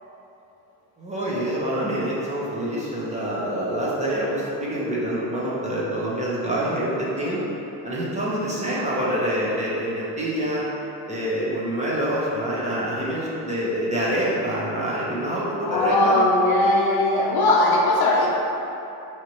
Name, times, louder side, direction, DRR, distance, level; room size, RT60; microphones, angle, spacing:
voice 1, 1.0-7.4 7.8-10.6 11.1-16.2, right 1 dB, 15° right, -7 dB, 1.3 m, -26 dB
voice 2, 15.6-18.3, left 2 dB, 50° left, -3 dB, 0.8 m, -19 dB
4.9 x 3.2 x 3.0 m, 3.0 s
hypercardioid pair, 65°, 47 cm